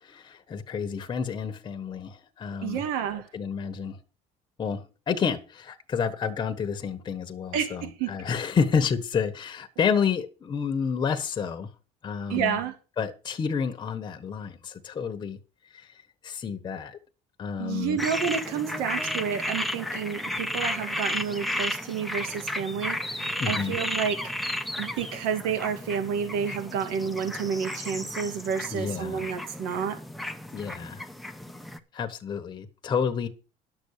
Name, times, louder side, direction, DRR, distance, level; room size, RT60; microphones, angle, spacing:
voice 1, 0.0-2.8 3.1-4.0 4.6-11.7 12.0-12.6 13.0-15.4 15.7-17.0 17.4-18.0 23.4-23.8 28.7-29.3 30.5-31.1 31.9-33.3, left 6 dB, 30° left, 1.2 m, -30 dB
voice 2, 2.6-3.3 7.5-8.1 12.3-12.7 17.6-24.2 24.8-30.0, right 7 dB, 85° right, 2.2 m, -30 dB
sound 1, 18.0-31.8, left 1 dB, ahead, 0.9 m, -33 dB
11.5 x 7.0 x 6.6 m
cardioid pair, 145°, 15 cm